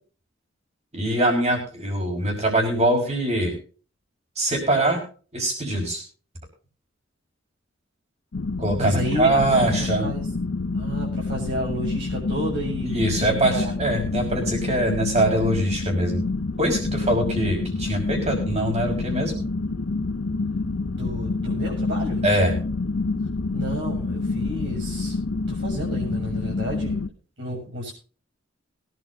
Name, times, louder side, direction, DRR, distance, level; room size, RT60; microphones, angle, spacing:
voice 1, 0.9-3.6 4.4-5.0 5.3-6.0 8.6-10.1 12.9-16.2 16.6-19.4 22.2-22.5, right 1 dB, 35° right, 3 dB, 5.8 m, -23 dB
sound 1, 8.3-27.1, left 3 dB, 75° left, 0.7 m, -28 dB
voice 2, 8.8-10.3 10.7-13.7 21.0-22.2 23.5-25.2 25.5-27.0 27.4-27.9, equal, 65° right, -3 dB, 7.5 m, -31 dB
22.5 x 11.0 x 2.7 m, 0.38 s
head